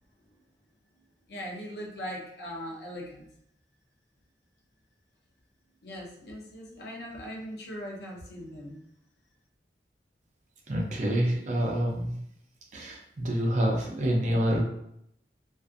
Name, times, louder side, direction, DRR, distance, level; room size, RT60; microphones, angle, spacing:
voice 1, 1.3-3.2 5.8-8.8, equal, 70° left, -1 dB, 0.6 m, -40 dB
voice 2, 10.7-12.2 12.7-14.6, equal, 45° right, -1 dB, 0.5 m, -27 dB
2.5 x 2.4 x 2.4 m, 0.74 s
head